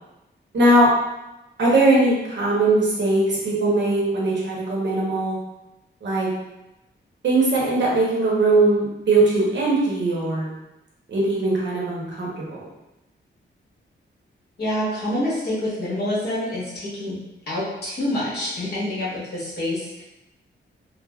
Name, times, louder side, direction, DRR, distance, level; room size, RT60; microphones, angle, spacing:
voice 1, 0.5-0.9 1.6-5.4 6.0-6.3 7.2-10.5 11.1-12.7, right 2 dB, 65° right, -4 dB, 0.8 m, -20 dB
voice 2, 14.6-17.2 17.5-20.0, left 1 dB, 55° left, -8 dB, 1.2 m, -27 dB
3.3 x 2.0 x 2.2 m, 0.95 s
wide cardioid pair, 140°, 20 cm